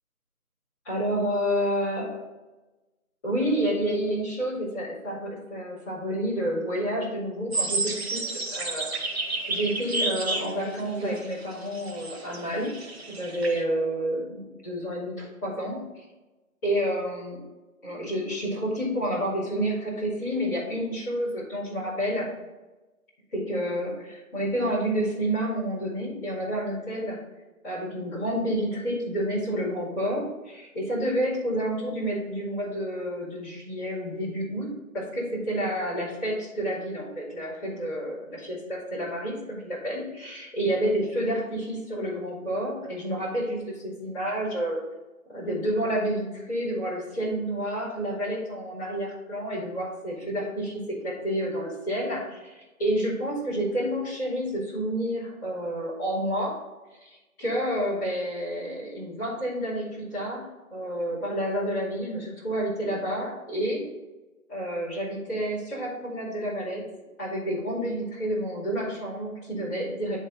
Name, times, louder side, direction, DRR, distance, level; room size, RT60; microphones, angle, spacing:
voice 1, 0.8-2.2 3.2-12.7 13.1-16.0 16.6-17.4 17.8-22.3 23.3-27.2 27.6-34.7 34.9-44.8 45.3-56.5 57.0-60.4 60.7-63.8 64.5-66.8 67.2-70.2, equal, 10° left, -13 dB, 2.6 m, -29 dB
sound 1, 7.5-13.6, right 3 dB, 45° right, 1.1 m, -31 dB
9.8 x 4.1 x 4.0 m, 1.1 s
figure-of-eight pair, 170°, 44 cm